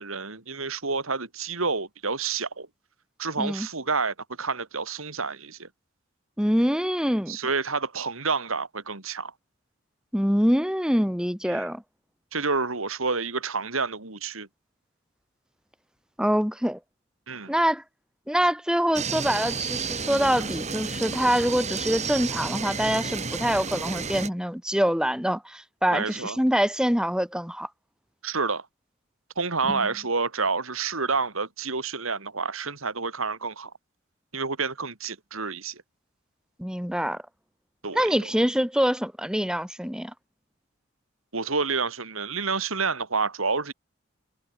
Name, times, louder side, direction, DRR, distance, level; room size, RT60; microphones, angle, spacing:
voice 1, 0.0-2.7 3.2-5.7 7.3-9.3 11.5-11.7 12.3-14.5 17.3-17.5 25.9-26.4 28.2-28.7 29.4-33.7 34.3-35.8 37.8-38.1 41.3-43.7, right 4 dB, 80° right, 3.1 m, -29 dB
voice 2, 6.4-7.4 10.1-11.8 16.2-16.8 17.5-17.8 18.3-27.7 29.7-29.8 36.6-37.2 37.9-40.1, equal, 5° right, 3.7 m, -25 dB
sound 1, 18.9-24.3, right 5 dB, 35° right, 3.3 m, -31 dB
head